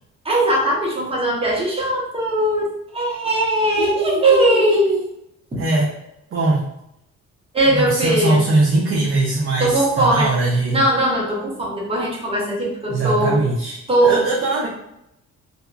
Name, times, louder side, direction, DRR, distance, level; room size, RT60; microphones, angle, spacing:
voice 1, 0.2-2.6 2.9-5.0 5.5-5.6 7.5-8.4 9.6-10.3 10.7-13.4 13.9-14.2, right 1 dB, 20° right, -3 dB, 0.8 m, -19 dB
voice 2, 3.8-5.0 5.6-5.9 6.3-6.6 7.6-10.8 12.9-13.8 14.0-14.7, right 2 dB, 45° right, -4 dB, 0.6 m, -21 dB
2.7 x 2.3 x 2.2 m, 0.80 s
cardioid pair, 90°, 30 cm